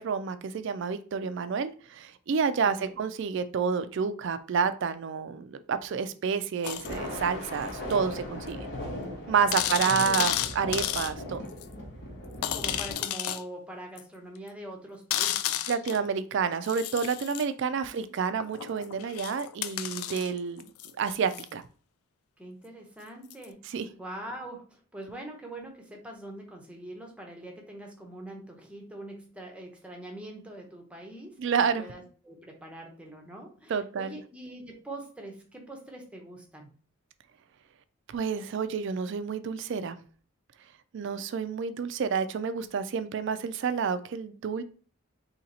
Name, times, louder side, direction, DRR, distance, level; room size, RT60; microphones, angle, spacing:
voice 1, 0.0-8.7 9.3-11.4 15.7-20.7 21.0-21.6 23.7-23.9 31.4-31.8 33.7-34.2 38.1-40.0 40.9-44.6, right 6 dB, 55° right, 11 dB, 0.3 m, -29 dB
voice 2, 2.6-2.9 9.5-10.3 12.5-15.7 17.8-18.6 22.4-31.4 31.8-36.7, right 1 dB, 5° right, 1 dB, 0.6 m, -44 dB
sound 1, 6.6-7.0 7.9-8.0 8.5-8.6 8.8-8.9 9.5-11.1 11.6-11.7 12.4-13.4 14.0-14.1 15.1-16.1 16.6-17.5 18.4-21.5 23.3-23.5, left 11 dB, 80° left, 0.3 m, -32 dB
Thunder, 6.7-12.9, left 1 dB, 55° left, 1.0 m, -38 dB
2.8 x 2.8 x 4.0 m, 0.40 s
head